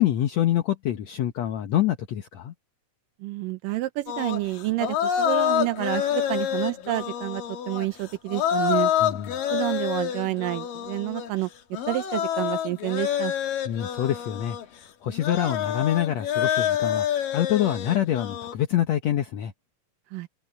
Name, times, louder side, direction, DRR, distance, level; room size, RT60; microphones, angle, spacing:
voice 1, 0.0-2.5 9.0-9.3 13.7-17.1 17.3-19.5, left 12 dB, 65° left, 2.0 m, -26 dB
voice 2, 3.2-8.9 9.5-11.5 11.9-13.3 20.1-20.3, right 17 dB, 85° right, 2.5 m, -29 dB
sound 1, 4.1-14.7 15.1-18.5, left 10 dB, 85° left, 3.7 m, -27 dB
omnidirectional pair, 3.8 m